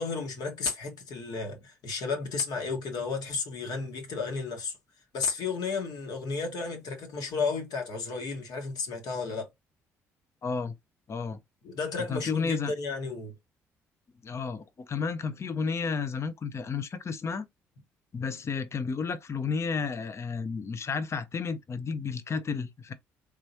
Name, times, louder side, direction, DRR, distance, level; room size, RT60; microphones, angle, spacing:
voice 1, 0.0-4.7 5.1-9.5 11.6-13.3, left 4 dB, 60° left, 1.4 m, -33 dB
voice 2, 10.4-10.7 11.1-11.4 12.1-12.7 14.2-17.4 18.1-22.9, left 5 dB, 40° left, 0.6 m, -32 dB
3.6 x 3.0 x 2.7 m
hypercardioid pair, 50°, 7 cm